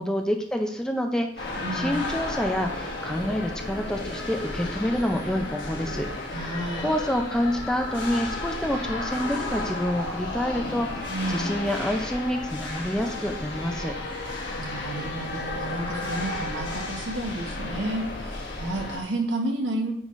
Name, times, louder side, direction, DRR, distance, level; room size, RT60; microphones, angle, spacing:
voice 1, 0.0-14.0, equal, 5° left, 3 dB, 0.5 m, -28 dB
sound 1, 1.4-19.0, left 2 dB, 70° left, 1.5 m, -33 dB
voice 2, 1.6-2.0 6.3-6.9 11.1-11.6 14.6-19.9, right 1 dB, 80° right, 2 dB, 1.1 m, -31 dB
8.9 x 3.7 x 3.1 m, 0.73 s
head